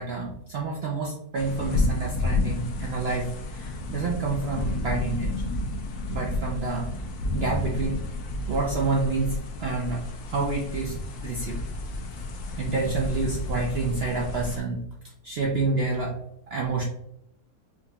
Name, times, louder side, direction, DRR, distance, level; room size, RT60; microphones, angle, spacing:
voice 1, 0.0-5.5 6.1-7.0 7.3-8.0 8.5-10.0 10.3-11.0 11.2-11.6 12.6-14.8 15.2-16.2 16.5-16.8, right 3 dB, 85° right, -1 dB, 0.5 m, -28 dB
sound 1, 1.3-14.6, left 2 dB, 75° left, 1.1 m, -31 dB
4.8 x 2.7 x 2.2 m, 0.78 s
omnidirectional pair, 1.8 m